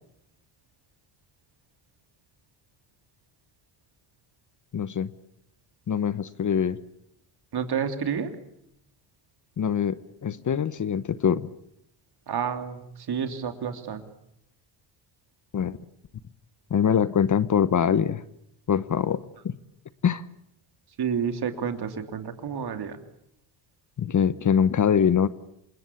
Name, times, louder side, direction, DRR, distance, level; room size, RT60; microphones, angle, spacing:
voice 1, 4.7-5.1 5.9-6.8 9.6-11.5 15.5-15.8 16.7-18.2 18.7-19.5 20.0-20.2 24.0-25.3, left 7 dB, 35° left, 15 dB, 1.0 m, -23 dB
voice 2, 7.5-8.3 12.3-14.1 21.0-23.0, right 7 dB, 50° right, 7 dB, 3.1 m, -30 dB
27.0 x 21.0 x 8.4 m, 0.77 s
supercardioid pair, 80°, 50 cm